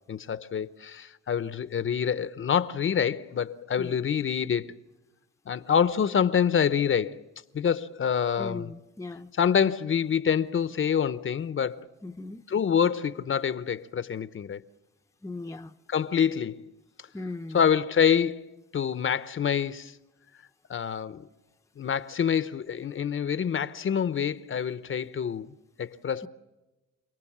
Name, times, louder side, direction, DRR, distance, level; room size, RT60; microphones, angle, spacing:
voice 1, 0.1-4.7 5.5-7.2 7.5-8.7 9.3-11.8 12.5-14.6 15.9-16.7 17.5-19.9 20.7-21.3 21.8-25.5 25.8-26.3, left 7 dB, 40° left, 0.9 m, -26 dB
voice 2, 8.4-9.3 12.0-12.4 15.2-15.7 17.1-17.6, left 2 dB, 10° left, 0.8 m, -38 dB
29.0 x 18.5 x 7.4 m
cardioid pair, 90°, 30 cm